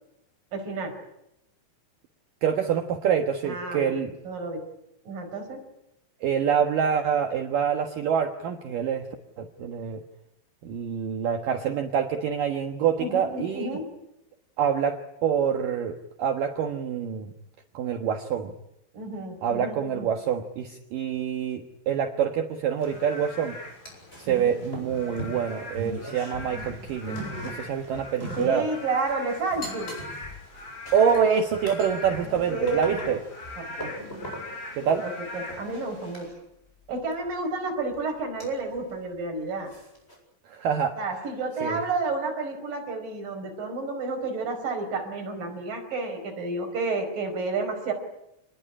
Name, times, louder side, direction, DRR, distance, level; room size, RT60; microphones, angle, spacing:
voice 1, 0.5-0.9 3.4-3.9 4.2-4.6 5.1-5.6 13.0-13.9 18.9-20.1 24.3-24.6 28.4-29.9 32.2-33.2 33.6-33.9 35.0-36.3 36.9-39.7 41.0-47.9, right 3 dB, 45° right, 4 dB, 6.1 m, -31 dB
voice 2, 2.4-4.1 6.2-9.1 9.4-10.0 10.6-13.7 14.6-17.3 17.7-18.5 19.4-23.6 24.2-28.7 30.9-33.2 34.8-35.0 40.5-41.0 41.6-41.8, right 7 dB, 70° right, 6 dB, 2.1 m, -26 dB
Frog / Rain, 22.8-36.3, left 2 dB, 80° left, 9.3 m, -42 dB
sound 1, 22.8-23.5 23.8-28.6 28.9-34.5 34.8-36.4 37.1-37.3 37.9-38.0 38.4-38.8 39.1-39.2 39.7-40.1, right 1 dB, 10° left, 8.1 m, -40 dB
27.0 x 20.5 x 9.9 m, 0.84 s
omnidirectional pair, 5.9 m